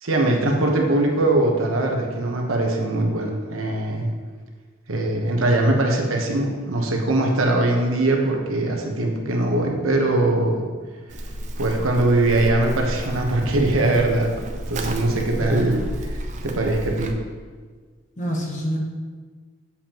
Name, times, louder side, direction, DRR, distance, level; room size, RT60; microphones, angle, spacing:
voice 1, 0.0-4.1 4.9-10.7 11.6-14.4 14.7-16.1 16.4-17.2, right 2 dB, 85° right, 1 dB, 1.1 m, -21 dB
Livestock farm animals working animals, 11.1-17.1, right 1 dB, 35° right, 0.5 m, -31 dB
voice 2, 18.2-18.8, equal, 35° left, 0 dB, 1.1 m, -27 dB
7.3 x 6.9 x 3.0 m, 1.5 s
head